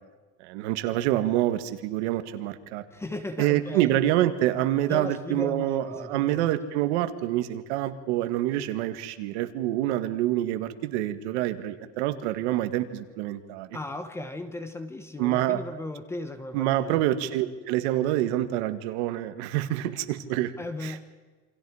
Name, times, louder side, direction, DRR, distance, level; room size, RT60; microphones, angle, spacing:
voice 1, 0.4-2.8 3.4-13.7 15.2-15.6 16.5-20.5 20.8-20.9, right 13 dB, 70° right, 9 dB, 1.9 m, -26 dB
voice 2, 2.9-4.0 4.9-6.5 13.7-16.9 20.6-21.1, left 2 dB, 5° left, 9 dB, 0.9 m, -36 dB
28.5 x 25.5 x 5.0 m, 1.3 s
cardioid pair, 180°, 35 cm